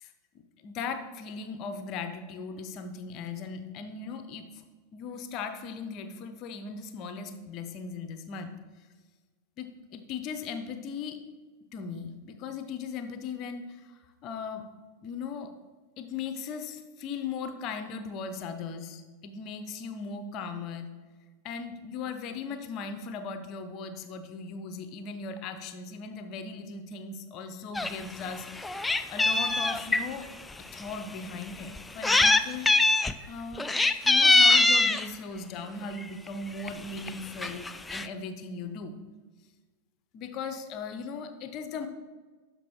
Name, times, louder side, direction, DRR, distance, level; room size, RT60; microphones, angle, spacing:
voice 1, 0.6-4.6 4.9-8.5 9.6-11.2 11.7-14.7 15.0-15.5 16.0-20.9 21.4-30.3 30.7-33.7 34.0-38.9 40.1-41.9, left 5 dB, 40° left, 8 dB, 0.7 m, -38 dB
Meow, 27.7-27.9 28.3-30.0 30.8-30.9 31.8-32.4 32.7-33.1 33.6-35.1 36.0-36.3 36.7-36.8 37.0-37.1 37.4-38.1, left 2 dB, 10° left, 0.3 m, -22 dB
12.0 x 5.3 x 3.0 m, 1.4 s
figure-of-eight pair, 90°, 0 cm